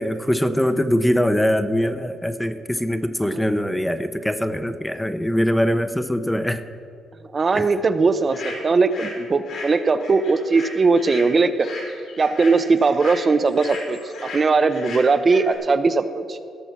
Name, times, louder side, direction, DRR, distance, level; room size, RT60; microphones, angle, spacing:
voice 1, 0.0-6.6 7.5-7.7, equal, 5° left, 10 dB, 0.6 m, -22 dB
voice 2, 7.3-11.7 12.2-16.4, right 4 dB, 35° right, 10 dB, 0.6 m, -19 dB
sound 1, 8.3-9.2 9.4-15.6, left 3 dB, 75° left, 3.2 m, -36 dB
17.5 x 6.2 x 5.9 m, 2.5 s
cardioid pair, 90°, 0 cm